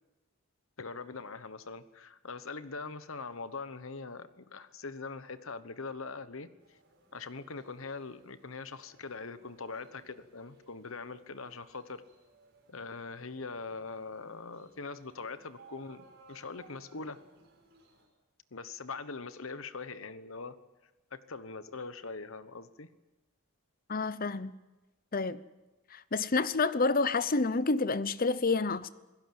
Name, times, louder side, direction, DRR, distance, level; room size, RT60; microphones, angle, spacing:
voice 1, 0.8-6.8 7.1-12.0 12.7-17.2 18.5-20.6 21.1-22.9, left 4 dB, 65° left, 1.2 m, -42 dB
sound 1, 6.6-18.0, right 3 dB, 50° right, 6.2 m, -61 dB
voice 2, 23.9-24.5 25.1-25.4 25.9-28.9, left 3 dB, 40° left, 0.7 m, -29 dB
27.5 x 16.5 x 7.8 m
head